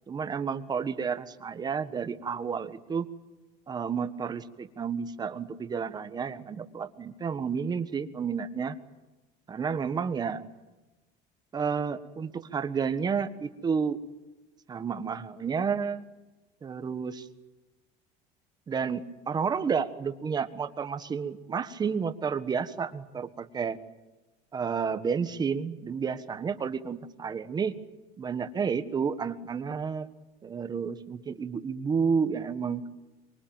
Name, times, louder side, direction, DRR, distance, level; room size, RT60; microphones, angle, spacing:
voice 1, 0.1-3.1 3.7-8.8 9.5-10.4 11.5-14.0 14.7-16.0 16.6-17.3 18.7-23.8 24.5-27.8 28.2-30.1 30.4-32.8, right 6 dB, 25° right, 10 dB, 1.5 m, -31 dB
24.5 x 23.5 x 9.1 m, 1.1 s
cardioid pair, 155°, 18 cm